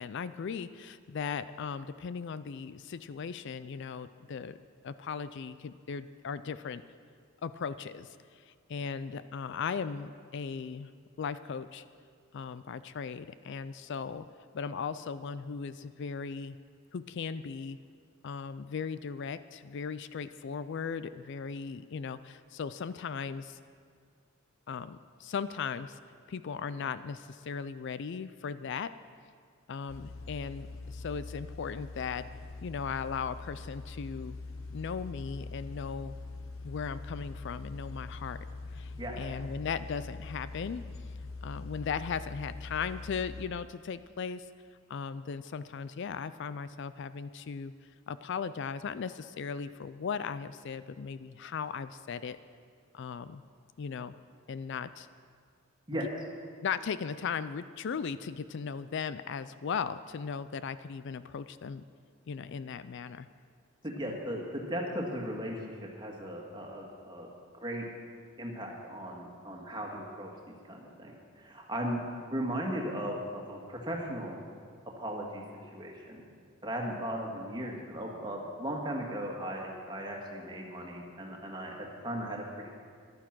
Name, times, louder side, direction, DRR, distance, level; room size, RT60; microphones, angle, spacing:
voice 1, 0.0-4.6 4.8-6.8 7.4-10.9 11.2-11.8 12.3-14.3 14.5-16.6 16.9-17.8 18.2-23.6 24.7-26.0 26.3-28.9 29.7-32.2 32.6-34.4 34.7-36.1 36.6-38.4 38.7-40.8 41.4-44.4 44.9-47.7 48.1-52.4 52.9-53.4 53.8-54.1 54.5-55.1 56.6-61.8 62.3-63.3 64.1-64.2, left 6 dB, 55° left, 14 dB, 0.4 m, -37 dB
sound 1, 29.9-43.5, left 3 dB, 70° left, 0.9 m, -43 dB
voice 2, 63.8-65.6 66.0-67.3 67.6-67.8 68.4-72.0 72.3-74.4 75.0-75.4 75.7-76.2 76.6-81.7 82.0-82.4, equal, 20° right, -1 dB, 1.9 m, -37 dB
14.0 x 11.5 x 6.0 m, 2.1 s
head